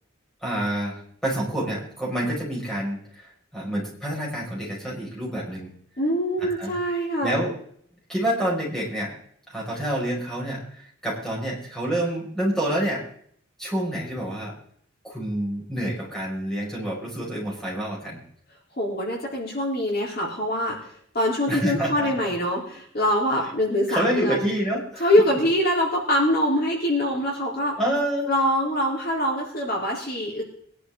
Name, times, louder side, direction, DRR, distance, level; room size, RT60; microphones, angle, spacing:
voice 1, 0.4-1.0 1.2-5.7 6.4-6.7 7.2-7.5 8.1-9.1 9.5-13.0 13.6-14.5 15.0-18.2 21.5-22.1 23.9-25.1 27.8-28.3, right 1 dB, 5° left, -5 dB, 5.9 m, -28 dB
voice 2, 6.0-7.4 18.8-24.5 25.0-27.8 28.3-30.4, equal, 45° left, -2 dB, 3.8 m, -24 dB
22.0 x 11.5 x 3.8 m, 0.63 s
head